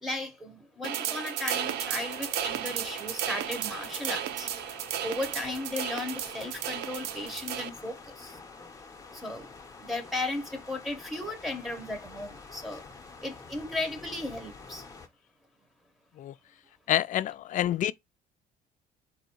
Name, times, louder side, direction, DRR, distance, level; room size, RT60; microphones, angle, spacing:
voice 1, 0.0-4.5 5.0-8.4 9.1-9.4 9.8-12.8 13.2-14.8, left 2 dB, ahead, 1.1 m, -35 dB
sound 1, 0.8-7.7, right 10 dB, 85° right, 0.5 m, -34 dB
sound 2, 1.7-15.1, left 4 dB, 20° left, 0.9 m, -48 dB
voice 2, 16.9-17.9, left 12 dB, 50° left, 0.4 m, -27 dB
4.0 x 2.7 x 4.5 m
cardioid pair, 110°, 17 cm